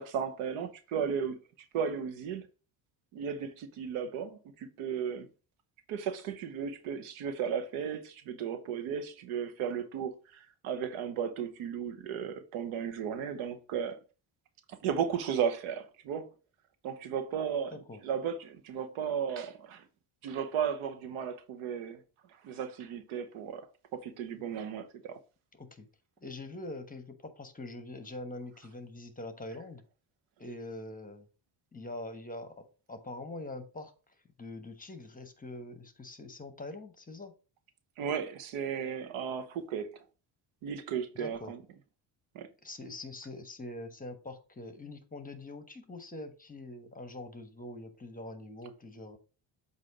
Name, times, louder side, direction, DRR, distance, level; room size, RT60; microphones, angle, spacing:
voice 1, 0.0-1.4 1.7-2.4 3.1-5.3 5.9-14.0 14.7-16.3 16.8-19.8 20.2-22.0 22.4-23.7 23.9-25.2 38.0-39.9 40.6-41.6 42.3-42.5, right 7 dB, 85° right, 1.0 m, -35 dB
voice 2, 25.5-25.9 26.2-29.8 30.4-31.3 31.7-33.9 34.4-37.3 41.1-41.5 42.6-49.2, left 2 dB, 15° left, 1.1 m, -44 dB
7.7 x 2.8 x 4.9 m
cardioid pair, 90°, 47 cm